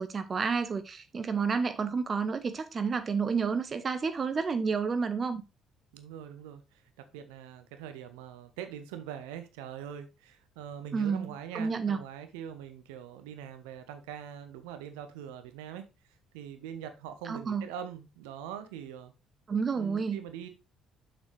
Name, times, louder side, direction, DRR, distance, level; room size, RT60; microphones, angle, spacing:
voice 1, 0.0-5.4 10.9-12.0 17.3-17.6 19.5-20.2, right 5 dB, 35° right, 0.7 m, -30 dB
voice 2, 5.9-15.9 16.3-19.1 19.7-20.5, right 9 dB, 65° right, 0.8 m, -43 dB
7.1 x 6.0 x 3.2 m
figure-of-eight pair, 50°, 0 cm